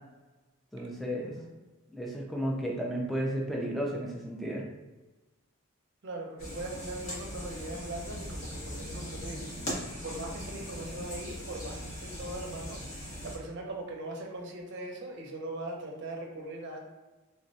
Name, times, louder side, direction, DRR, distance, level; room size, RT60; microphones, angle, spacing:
voice 1, 0.7-1.3 1.9-4.7, equal, ahead, -3 dB, 0.4 m, -33 dB
voice 2, 6.0-16.8, right 2 dB, 55° right, 0 dB, 0.5 m, -40 dB
sound 1, 6.4-13.4, equal, 65° left, 0.9 m, -40 dB
3.4 x 2.1 x 2.6 m, 1.1 s
head